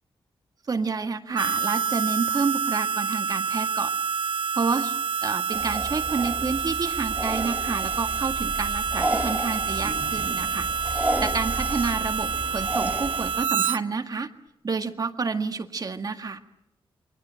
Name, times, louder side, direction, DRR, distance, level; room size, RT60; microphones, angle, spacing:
voice 1, 0.7-3.9 4.5-5.0 5.2-14.3 14.6-16.4, right 4 dB, 40° right, 6 dB, 1.9 m, -29 dB
Harmonica, 1.3-13.8, right 6 dB, 65° right, 1.0 m, -28 dB
sound 1, 5.5-13.4, right 1 dB, 15° right, 3.0 m, -32 dB
29.0 x 23.5 x 7.7 m, 0.82 s
wide cardioid pair, 115°, 10 cm